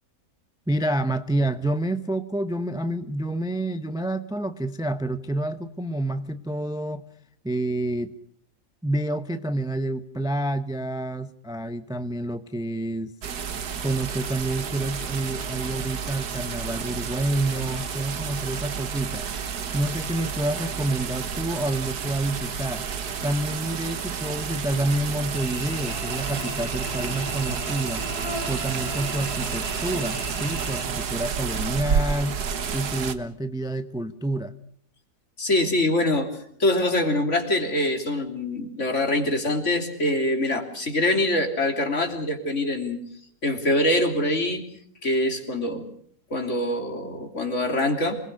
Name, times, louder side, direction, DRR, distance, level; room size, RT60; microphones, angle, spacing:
voice 1, 0.7-7.0 7.4-8.1 8.8-13.1 13.8-19.3 19.7-22.8 23.2-28.0 28.5-32.4 32.7-34.5, right 1 dB, 5° right, 10 dB, 0.6 m, -28 dB
sound 1, 13.2-33.2, right 6 dB, 85° right, 1.9 m, -30 dB
Cricket / Buzz, 25.3-30.8, equal, 70° right, 5.7 m, -36 dB
voice 2, 35.4-43.0 43.4-44.6 45.0-45.8 46.3-48.2, left 1 dB, 50° left, 4 dB, 3.6 m, -24 dB
27.0 x 20.5 x 6.5 m, 0.62 s
omnidirectional pair, 1.6 m